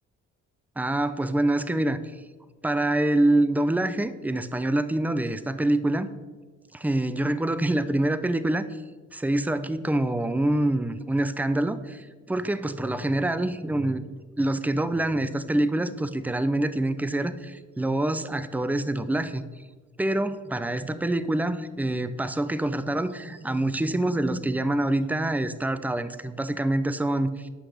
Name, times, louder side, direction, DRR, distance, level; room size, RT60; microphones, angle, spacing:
voice 1, 0.8-2.2 2.6-6.1 6.7-8.7 9.1-14.0 14.4-19.4 20.0-27.5, right 1 dB, 5° right, 13 dB, 0.6 m, -26 dB
11.5 x 5.9 x 6.5 m, 1.4 s
cardioid pair, 90°, 30 cm